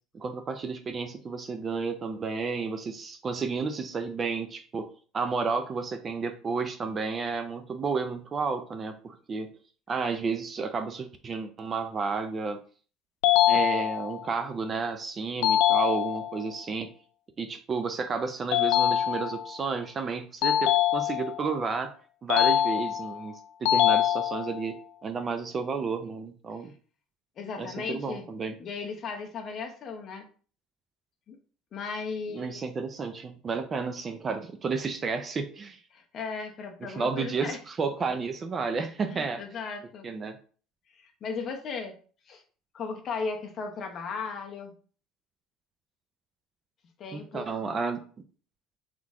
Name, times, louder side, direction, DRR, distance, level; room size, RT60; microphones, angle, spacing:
voice 1, 0.1-4.9 5.1-9.5 9.9-12.6 13.5-16.9 17.4-21.9 22.2-26.7 27.6-28.5 32.3-35.8 36.9-39.4 40.0-40.4 47.1-48.1, right 4 dB, 25° right, 8 dB, 0.4 m, -32 dB
sound 1, 13.2-14.3 15.4-16.4 18.5-19.5 20.4-21.5 22.3-23.2 23.7-24.7, left 11 dB, 85° left, 0.4 m, -24 dB
voice 2, 27.4-28.3 28.6-30.3 31.3-31.4 31.7-32.6 35.9-37.6 39.1-40.1 40.9-41.9 42.3-42.4 42.7-44.7 47.0-47.5, left 5 dB, 35° left, 3 dB, 0.9 m, -36 dB
3.9 x 3.1 x 3.6 m, 0.41 s
cardioid pair, 150°, 0 cm